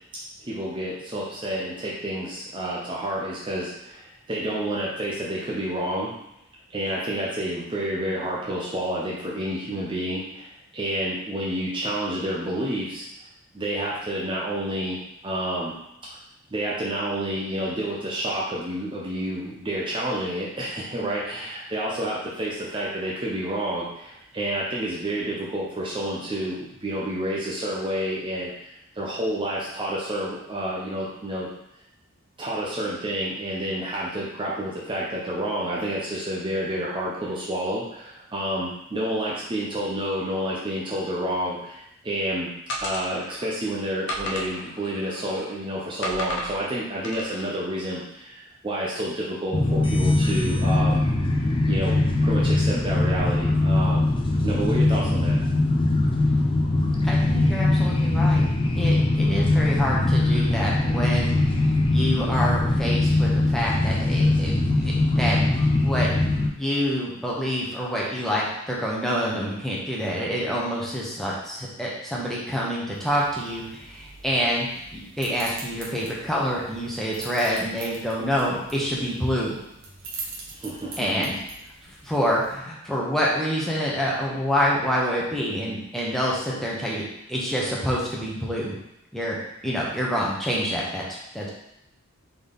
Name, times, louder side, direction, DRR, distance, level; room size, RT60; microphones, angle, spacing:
voice 1, 0.4-6.1 6.7-13.1 13.5-15.7 16.5-31.5 32.4-42.5 42.8-51.0 51.3-54.0 54.4-55.4 80.5-81.1, right 1 dB, 25° right, -5 dB, 0.6 m, -29 dB
sound 1, 42.7-43.5 44.1-45.6 46.0-46.6 47.0-47.5, equal, 60° left, 0.8 m, -33 dB
sound 2, 49.5-66.5, left 2 dB, 25° left, 0.4 m, -21 dB
voice 2, 57.0-58.4 58.8-64.5 64.8-66.1 66.5-79.6 81.0-81.4 82.0-87.0 87.3-88.8 89.1-89.4 89.6-91.5, equal, ahead, -5 dB, 0.9 m, -27 dB
sound 3, 72.9-82.6, right 4 dB, 70° right, 1.1 m, -43 dB
3.9 x 3.9 x 3.5 m, 0.83 s
head